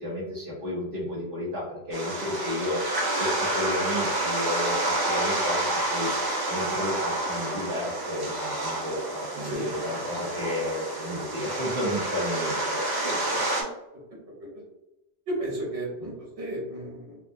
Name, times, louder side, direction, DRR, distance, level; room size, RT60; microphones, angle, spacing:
voice 1, 0.0-6.1 6.5-12.8 16.0-16.1, left 1 dB, 55° right, -9 dB, 1.1 m, -32 dB
sound 1, 1.9-13.6, right 1 dB, 30° right, 0.4 m, -29 dB
voice 2, 9.4-9.8 13.0-13.5 15.3-17.2, right 1 dB, 90° right, -5 dB, 1.5 m, -33 dB
3.4 x 2.5 x 2.6 m, 0.96 s
omnidirectional pair, 1.1 m